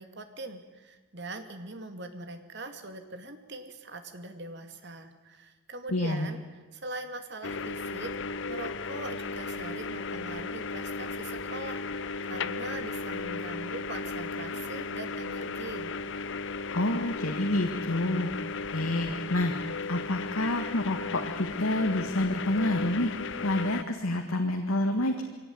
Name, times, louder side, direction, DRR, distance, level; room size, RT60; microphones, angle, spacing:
voice 1, 0.0-6.4 6.7-15.9, right 2 dB, 50° right, 7 dB, 2.2 m, -42 dB
voice 2, 5.9-6.3 16.7-18.3 18.7-19.5 19.9-23.1 23.4-25.2, left 1 dB, 80° left, 4 dB, 1.9 m, -28 dB
sound 1, 7.4-23.8, left 4 dB, 55° left, 0.6 m, -35 dB
23.5 x 17.5 x 9.6 m, 1.3 s
head